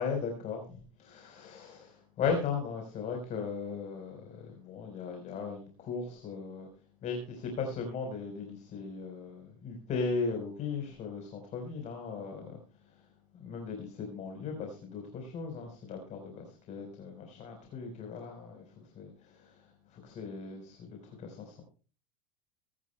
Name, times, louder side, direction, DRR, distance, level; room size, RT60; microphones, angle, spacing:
voice 1, 0.0-6.7 7.0-13.0 13.3-21.6, left 5 dB, 40° left, 3 dB, 4.2 m, -37 dB
25.0 x 12.0 x 2.2 m, 0.38 s
hypercardioid pair, 80°, 18 cm